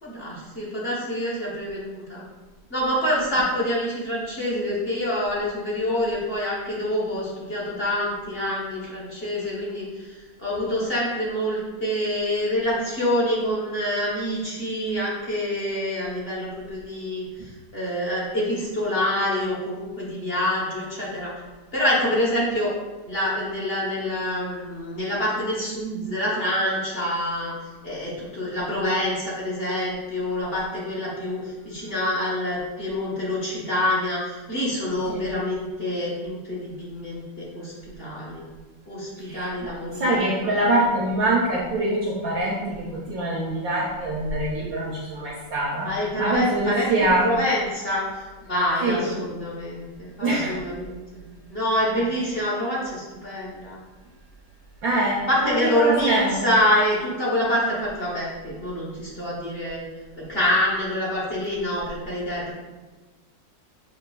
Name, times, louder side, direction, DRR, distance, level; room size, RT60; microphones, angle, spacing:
voice 1, 0.0-2.2 2.7-17.2 17.7-21.3 21.7-22.7 23.0-27.5 27.8-31.4 31.6-37.7 38.0-38.4 38.9-40.2 45.8-53.8 55.3-59.8 60.3-62.5, left 1 dB, 40° left, -7 dB, 1.1 m, -26 dB
voice 2, 39.2-45.9 46.2-47.4 48.8-49.1 50.2-50.6 54.8-56.4, right 1 dB, 65° right, -3 dB, 0.9 m, -24 dB
6.5 x 2.8 x 2.3 m, 1.2 s
omnidirectional pair, 1.9 m